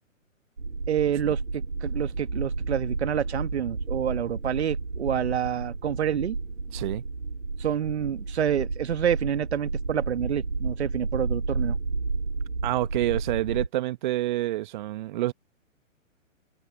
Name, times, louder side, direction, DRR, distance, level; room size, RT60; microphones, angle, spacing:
sound 1, 0.6-13.7, right 3 dB, 80° right, 4.8 m, -32 dB
voice 1, 0.9-6.4 7.6-11.8, right 9 dB, 55° right, 1.7 m, -28 dB
voice 2, 6.7-7.0 12.6-15.3, right 15 dB, 35° right, 1.5 m, -28 dB
figure-of-eight pair, 125°, 40 cm